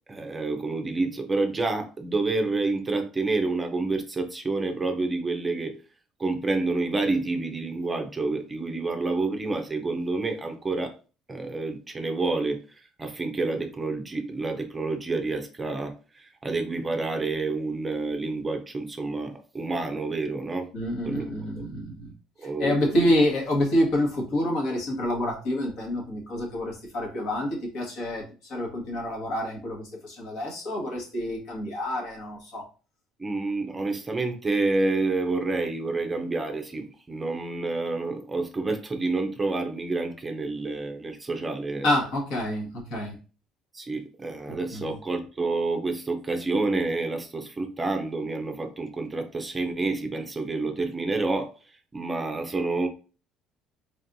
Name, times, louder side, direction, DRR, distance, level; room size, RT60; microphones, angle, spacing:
voice 1, 0.1-5.8 6.2-10.9 11.3-20.7 21.0-21.2 21.6-21.7 22.4-23.1 33.2-41.9 43.7-51.5 51.9-52.9, right 3 dB, 15° right, 5 dB, 0.6 m, -28 dB
voice 2, 20.7-22.1 22.6-32.6 41.8-43.2 44.7-45.0, left 1 dB, 65° left, 0 dB, 1.6 m, -27 dB
4.2 x 3.4 x 2.6 m, 0.35 s
cardioid pair, 145°, 0 cm